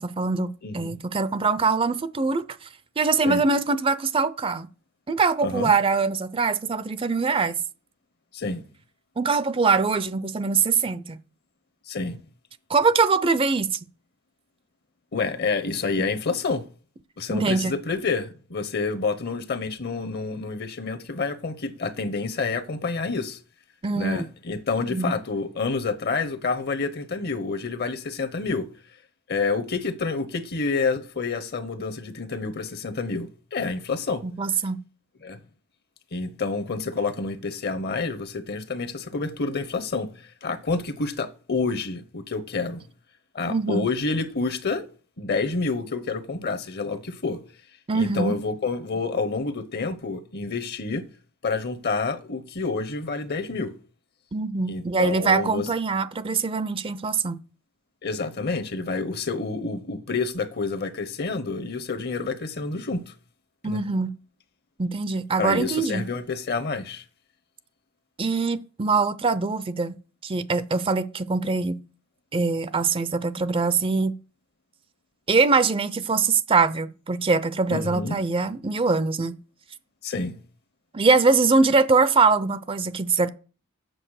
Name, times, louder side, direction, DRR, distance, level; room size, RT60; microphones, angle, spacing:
voice 1, 0.0-2.7 3.0-4.7 5.1-7.6 9.2-11.2 12.7-13.8 17.3-17.7 23.8-24.2 24.8-25.2 34.2-34.8 43.5-43.8 47.9-48.3 54.3-57.4 63.6-64.1 64.8-66.0 68.2-71.8 72.3-74.1 75.3-79.4 80.9-83.3, right 4 dB, 25° right, 0.5 m, -23 dB
voice 2, 0.6-0.9 3.2-3.4 5.4-5.7 8.3-8.7 11.9-12.2 15.1-16.6 17.2-23.4 23.9-28.7 29.3-34.2 35.2-35.4 36.1-42.8 43.3-44.9 45.2-47.4 47.9-51.0 51.4-53.7 54.7-55.7 58.0-63.1 63.6-63.8 65.4-67.0 77.7-78.2 80.0-80.3, left 4 dB, 50° left, 0.9 m, -28 dB
7.8 x 6.9 x 6.4 m
head